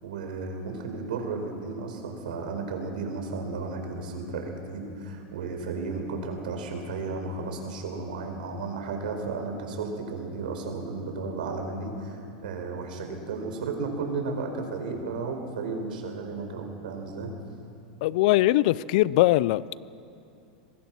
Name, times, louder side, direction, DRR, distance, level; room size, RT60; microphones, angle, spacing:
voice 1, 0.0-17.3, right 4 dB, 85° right, 3 dB, 4.6 m, -34 dB
voice 2, 18.0-19.8, left 16 dB, 60° left, 20 dB, 0.5 m, -21 dB
24.0 x 20.0 x 6.1 m, 2.7 s
supercardioid pair, 135°, 5 cm